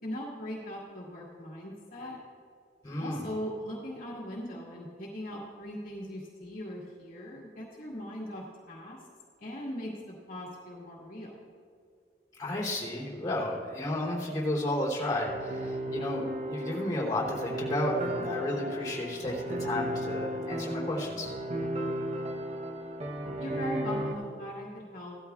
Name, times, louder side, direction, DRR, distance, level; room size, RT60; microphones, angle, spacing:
voice 1, 0.0-2.2 3.0-9.0 9.4-11.3 23.4-25.2, equal, 55° left, -5 dB, 2.0 m, -39 dB
voice 2, 2.8-3.2 12.4-21.4, left 1 dB, 20° left, -5 dB, 3.1 m, -32 dB
sound 1, 15.3-24.1, equal, 40° right, 1.0 m, -34 dB
17.0 x 13.0 x 2.4 m, 2.4 s
head